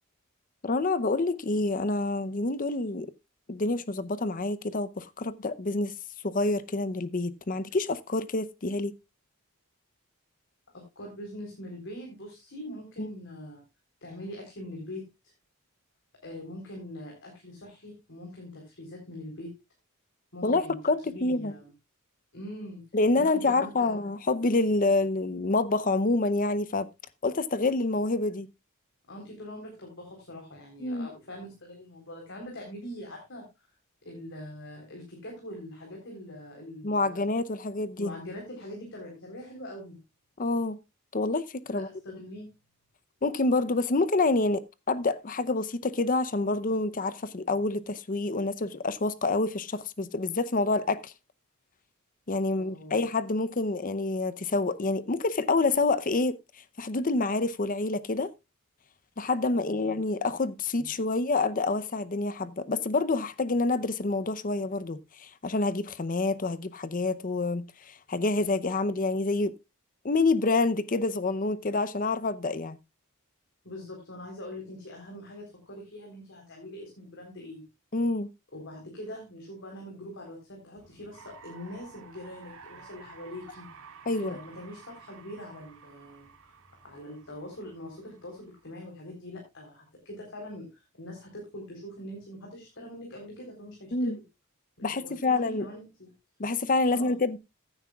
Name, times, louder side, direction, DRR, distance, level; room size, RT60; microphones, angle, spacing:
voice 1, 0.6-3.1 3.5-5.9 6.2-8.9 13.0-13.1 20.4-21.5 22.9-26.9 27.2-28.5 30.8-31.1 36.8-38.1 40.4-40.8 41.1-41.9 43.2-51.1 52.3-56.4 56.8-58.3 59.2-69.5 70.0-72.8 77.9-78.3 84.1-84.3 93.9-94.2 94.8-95.7 96.4-97.4, left 3 dB, 40° left, 0.7 m, -27 dB
voice 2, 11.0-13.6 14.0-15.3 16.2-19.5 20.3-21.7 22.3-22.8 23.1-24.1 29.1-33.7 34.0-37.3 38.0-40.0 41.7-42.5 52.6-53.0 59.6-59.9 60.8-60.9 73.6-77.7 78.5-83.7 84.1-86.6 86.8-94.2 94.8-96.1 96.9-97.2, left 1 dB, 55° left, 3.9 m, -43 dB
sound 1, 80.8-88.8, right 5 dB, 65° right, 1.9 m, -52 dB
15.0 x 10.0 x 2.4 m
head